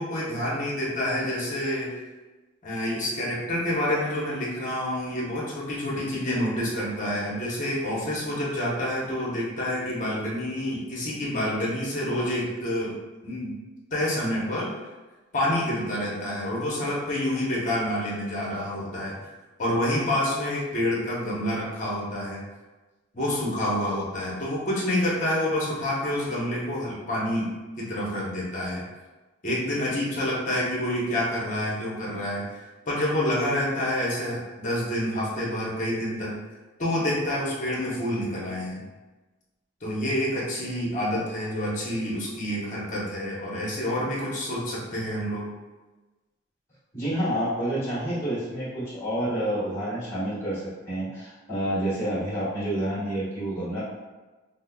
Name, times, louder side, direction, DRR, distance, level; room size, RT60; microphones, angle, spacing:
voice 1, 0.0-1.9 2.6-13.0 13.2-13.6 13.9-14.7 15.3-19.1 19.6-22.4 23.1-28.8 29.4-32.4 32.9-36.4 36.8-38.8 39.8-45.5, left 1 dB, 40° left, -5 dB, 0.8 m, -28 dB
voice 2, 46.9-53.8, right 1 dB, 15° left, -10 dB, 1.4 m, -29 dB
5.2 x 2.0 x 2.2 m, 1.2 s
head